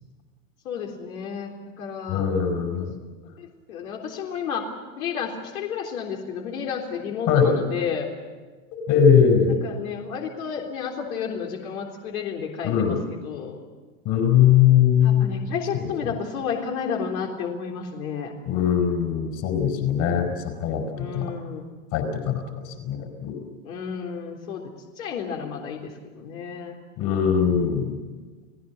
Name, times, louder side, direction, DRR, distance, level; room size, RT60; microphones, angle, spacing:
voice 1, 0.7-2.3 3.4-4.6 5.0-8.1 9.6-13.0 13.2-13.6 15.0-18.3 20.9-21.6 23.6-24.6 25.0-26.8, left 7 dB, 80° left, 0 dB, 3.8 m, -31 dB
voice 2, 2.1-2.9 7.3-7.5 8.7-9.6 12.6-13.0 14.0-16.2 18.5-21.3 21.9-23.5 27.0-28.0, left 8 dB, 45° left, 5 dB, 4.9 m, -21 dB
30.0 x 17.5 x 7.2 m, 1.4 s
supercardioid pair, 135°, 42 cm